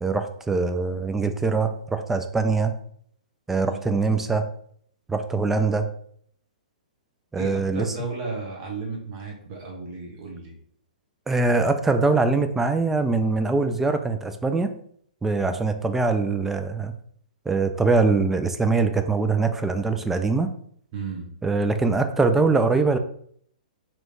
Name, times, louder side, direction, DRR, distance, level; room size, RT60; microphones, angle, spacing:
voice 1, 0.0-2.7 3.5-4.4 5.1-5.9 7.3-7.9 11.3-14.7 15.2-16.9 17.5-20.5 21.4-23.0, right 3 dB, 5° right, 8 dB, 0.3 m, -23 dB
voice 2, 7.3-10.5 20.9-21.4, right 3 dB, 35° right, 0 dB, 1.1 m, -34 dB
3.0 x 3.0 x 3.8 m, 0.64 s
figure-of-eight pair, 115°, 4 cm